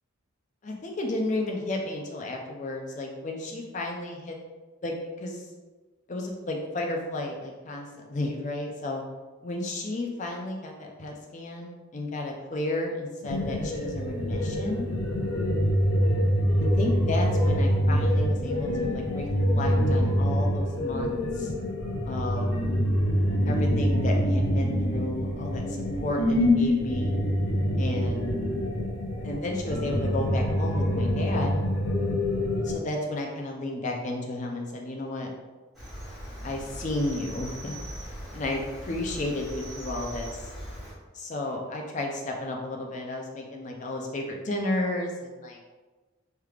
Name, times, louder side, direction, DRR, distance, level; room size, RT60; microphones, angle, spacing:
voice 1, 0.6-4.4 4.8-5.5 6.1-9.0 9.4-14.9 16.8-21.5 22.1-22.5 23.5-27.1 27.8-28.2 29.2-31.6 32.6-35.3 36.4-37.8 38.3-38.6 38.9-40.5 41.1-45.6, left 2 dB, 35° left, 1 dB, 0.4 m, -32 dB
sound 1, 13.2-32.7, equal, 80° left, 0.7 m, -25 dB
Cricket, 35.7-40.9, equal, ahead, 0.9 m, -40 dB
3.3 x 3.2 x 2.3 m, 1.3 s
head